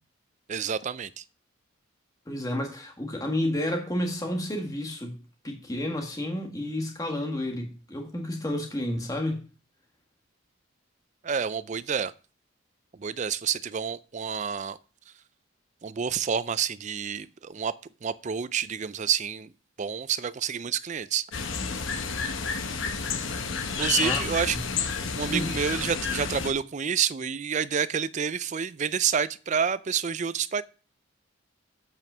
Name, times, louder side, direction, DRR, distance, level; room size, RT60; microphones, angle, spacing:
voice 1, 0.5-1.2 11.2-12.1 13.0-14.8 15.8-17.7 18.0-19.5 19.8-21.2 23.8-30.6, right 7 dB, 35° right, 0.4 m, -29 dB
voice 2, 2.3-5.2 5.4-9.4 24.0-24.2 24.5-24.6 25.3-25.5, left 1 dB, 15° left, 1.7 m, -30 dB
sound 1, 21.3-26.5, left 5 dB, 65° left, 1.0 m, -30 dB
8.2 x 5.3 x 6.1 m
head